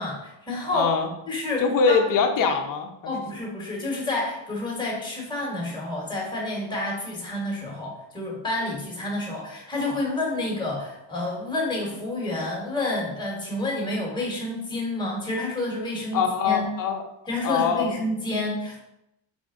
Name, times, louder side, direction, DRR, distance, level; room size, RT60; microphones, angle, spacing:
voice 1, 0.0-0.9 1.3-2.0 3.0-16.6 17.3-18.8, left 2 dB, 10° left, -2 dB, 1.4 m, -29 dB
voice 2, 0.7-1.1 1.6-3.1 16.1-17.0 17.4-17.9, left 5 dB, 40° left, 4 dB, 0.7 m, -23 dB
3.8 x 3.5 x 3.8 m, 0.84 s
cardioid pair, 135°, 50 cm